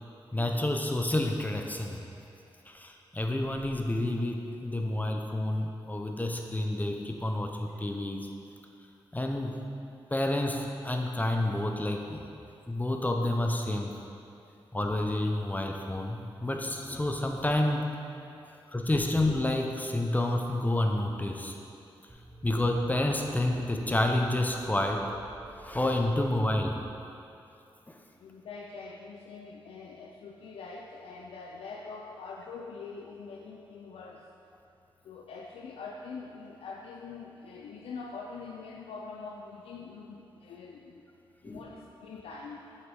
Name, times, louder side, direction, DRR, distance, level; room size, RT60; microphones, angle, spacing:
voice 1, 0.3-2.0 2.7-8.2 9.1-9.6 10.1-12.3 12.7-13.9 14.7-17.9 18.7-21.6 22.4-25.1 25.6-26.8 27.9-28.0 41.4-41.6, left 1 dB, 15° left, 3 dB, 0.8 m, -29 dB
sound 1, 22.1-27.1, right 2 dB, 25° right, 0.8 m, -52 dB
voice 2, 28.2-34.2 35.0-41.1 41.4-42.7, left 4 dB, 90° left, -1 dB, 0.4 m, -44 dB
7.8 x 5.7 x 3.5 m, 2.7 s
cardioid pair, 50°, 10 cm